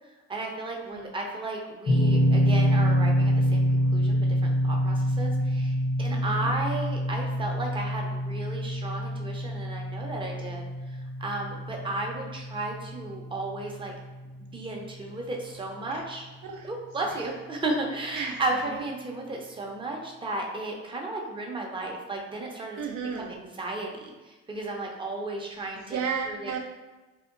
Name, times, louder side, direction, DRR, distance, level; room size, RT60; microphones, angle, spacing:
voice 1, 0.3-10.6 11.2-13.9 14.5-16.3 16.6-22.8 23.2-26.0 26.2-26.5, right 2 dB, 15° right, 0 dB, 0.5 m, -34 dB
sound 1, 1.9-14.8, equal, 25° left, 0.5 m, -26 dB
voice 2, 6.1-6.5 15.9-16.0 16.4-16.7 18.2-18.4 22.8-23.4 25.9-26.6, right 6 dB, 85° right, 2 dB, 0.4 m, -33 dB
2.7 x 2.1 x 2.4 m, 1.2 s
supercardioid pair, 70°, 29 cm